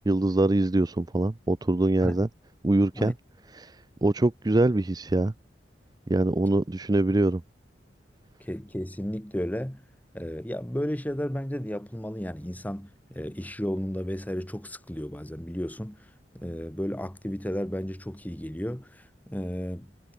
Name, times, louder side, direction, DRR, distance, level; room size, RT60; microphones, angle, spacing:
voice 1, 0.0-2.3 2.6-3.1 3.6-3.8 4.0-5.3 6.1-7.4, right 2 dB, 20° right, 0.5 m, -23 dB
voice 2, 8.4-9.8 10.1-16.0 16.3-19.9, equal, 10° left, 1.4 m, -33 dB
head